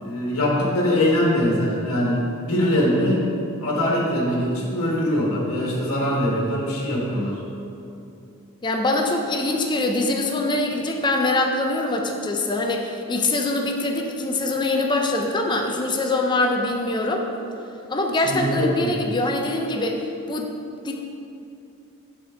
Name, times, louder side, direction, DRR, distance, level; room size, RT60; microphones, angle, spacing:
voice 1, 0.0-3.3 3.6-7.4 18.2-18.9, left 1 dB, 80° left, -4 dB, 1.3 m, -22 dB
voice 2, 8.6-17.3 17.9-20.0 20.3-20.5 20.8-20.9, left 2 dB, 20° left, 2 dB, 0.5 m, -23 dB
6.8 x 4.3 x 4.9 m, 2.7 s
head